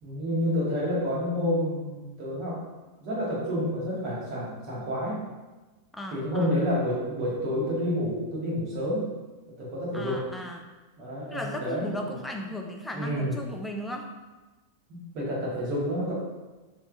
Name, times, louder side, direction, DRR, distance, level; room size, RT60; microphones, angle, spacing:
voice 1, 0.0-2.6 3.0-5.2 6.1-9.1 9.6-10.2 11.0-12.0 12.4-12.5 12.9-13.3 14.9-16.1, equal, 40° right, -6 dB, 1.4 m, -29 dB
voice 2, 5.9-6.5 9.9-10.6 11.3-14.0, equal, 5° left, 2 dB, 0.4 m, -36 dB
3.4 x 3.2 x 2.4 m, 1.2 s
figure-of-eight pair, 90°, 0 cm